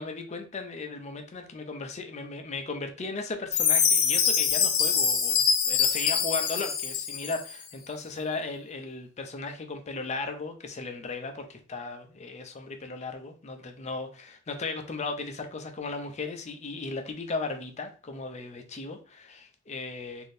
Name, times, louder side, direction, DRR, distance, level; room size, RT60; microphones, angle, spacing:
voice 1, 0.0-20.3, left 3 dB, 35° left, 5 dB, 0.5 m, -36 dB
Chime, 3.5-7.5, left 6 dB, 85° left, 0.6 m, -24 dB
3.4 x 2.6 x 2.6 m, 0.38 s
head